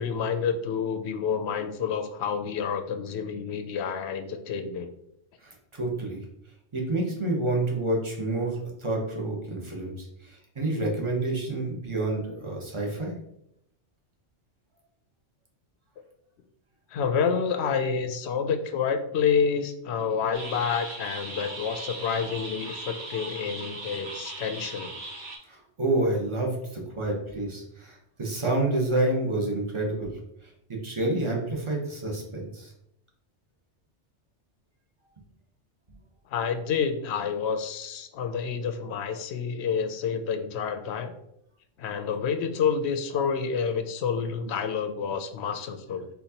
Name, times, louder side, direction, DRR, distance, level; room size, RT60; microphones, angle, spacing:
voice 1, 0.0-4.9 16.9-25.0 36.3-41.1 41.8-46.1, left 6 dB, 75° left, 8 dB, 0.8 m, -28 dB
voice 2, 5.4-6.2 6.7-13.1 25.5-30.1 30.7-32.7, right 2 dB, 25° right, -1 dB, 1.0 m, -28 dB
sound 1, 20.3-25.4, right 2 dB, 85° right, 1.7 m, -38 dB
4.3 x 4.1 x 2.8 m, 0.78 s
omnidirectional pair, 1.2 m